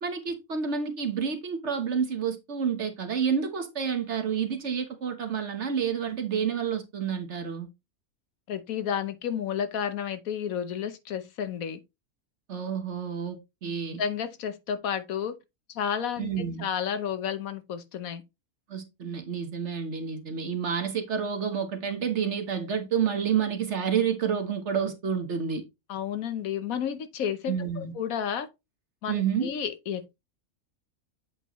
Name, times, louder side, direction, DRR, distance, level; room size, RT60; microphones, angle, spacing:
voice 1, 0.0-7.7 12.5-14.0 16.2-16.6 18.7-25.6 27.5-27.9 29.1-29.5, right 7 dB, 50° right, 1.3 m, -29 dB
voice 2, 8.5-11.8 14.0-15.3 15.7-18.2 25.9-28.5 29.0-30.2, left 8 dB, 70° left, 1.2 m, -31 dB
8.1 x 4.4 x 3.0 m
omnidirectional pair, 1.6 m